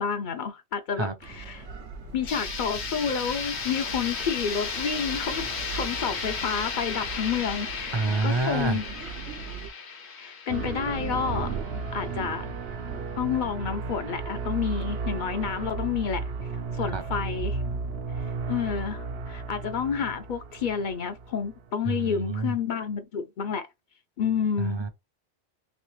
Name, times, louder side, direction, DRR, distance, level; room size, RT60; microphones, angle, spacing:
voice 1, 0.0-1.6 2.1-8.8 10.2-11.6 11.9-12.4 13.2-16.2 16.7-17.6 18.5-23.7 24.2-24.8, left 7 dB, 55° left, 0.6 m, -30 dB
sound 1, 1.2-9.7, right 5 dB, 90° right, 1.2 m, -41 dB
sound 2, 2.3-12.0, left 5 dB, 75° left, 1.2 m, -35 dB
voice 2, 7.9-8.8 16.9-17.0 21.8-22.5 24.6-24.9, right 3 dB, 35° right, 0.5 m, -27 dB
sound 3, 10.5-21.7, right 4 dB, 70° right, 0.8 m, -33 dB
3.3 x 3.1 x 3.1 m
omnidirectional pair, 1.1 m